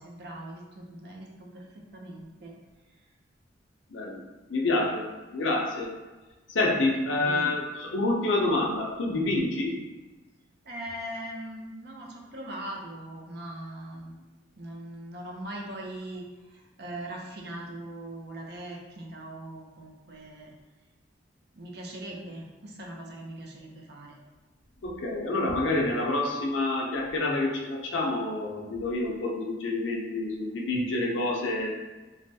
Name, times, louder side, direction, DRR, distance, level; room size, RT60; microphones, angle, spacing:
voice 1, 0.0-2.5 6.9-7.6 10.7-14.1 14.6-16.2 16.8-20.5 21.5-24.2, right 1 dB, 60° right, -1 dB, 0.6 m, -40 dB
voice 2, 3.9-4.2 4.5-6.0 6.5-9.8 24.8-31.8, left 2 dB, 80° left, 0 dB, 0.6 m, -28 dB
3.2 x 2.2 x 2.7 m, 1.2 s
head